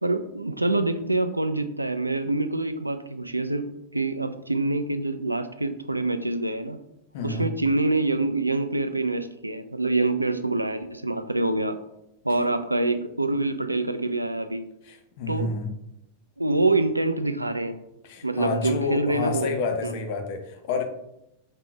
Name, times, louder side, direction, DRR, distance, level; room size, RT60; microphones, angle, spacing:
voice 1, 0.0-3.7 3.9-6.8 7.2-11.8 12.2-14.6 15.3-15.5 16.4-17.8 18.2-19.5 19.8-19.9, right 2 dB, 85° right, 10 dB, 0.3 m, -25 dB
voice 2, 7.1-7.5 14.8-15.7 18.0-20.8, left 4 dB, 50° left, 5 dB, 0.7 m, -29 dB
5.5 x 3.7 x 2.3 m, 0.83 s
figure-of-eight pair, 90°, 0 cm